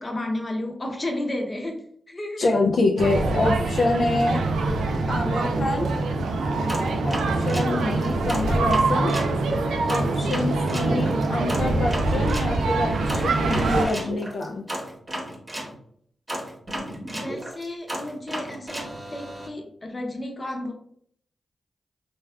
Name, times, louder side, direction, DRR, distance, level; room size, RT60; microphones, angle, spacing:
voice 1, 0.0-2.4 17.1-20.7, left 1 dB, 35° left, 2 dB, 0.7 m, -32 dB
voice 2, 2.4-4.4 5.1-5.9 7.0-9.1 9.9-14.7, left 2 dB, 70° left, 0 dB, 0.3 m, -26 dB
sound 1, 3.0-13.9, right 3 dB, 90° right, 0.3 m, -24 dB
sound 2, 6.7-9.3 9.9-15.7 16.3-19.5, right 1 dB, 30° right, 0.9 m, -34 dB
3.3 x 2.2 x 2.2 m, 0.64 s
supercardioid pair, 45°, 0 cm